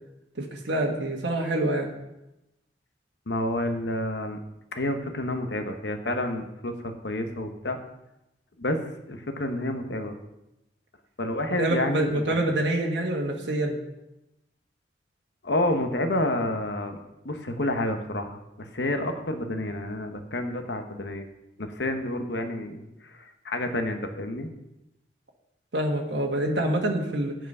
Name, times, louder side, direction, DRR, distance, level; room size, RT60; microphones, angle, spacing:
voice 1, 0.4-1.9 11.6-13.8 25.7-27.3, right 1 dB, 80° right, 0 dB, 1.5 m, -26 dB
voice 2, 3.3-4.4 4.7-7.8 8.6-8.8 9.1-10.2 11.2-12.4 15.4-17.0 17.2-21.3 21.6-24.5, left 1 dB, 75° left, 6 dB, 1.1 m, -29 dB
9.4 x 6.1 x 5.5 m, 0.91 s
head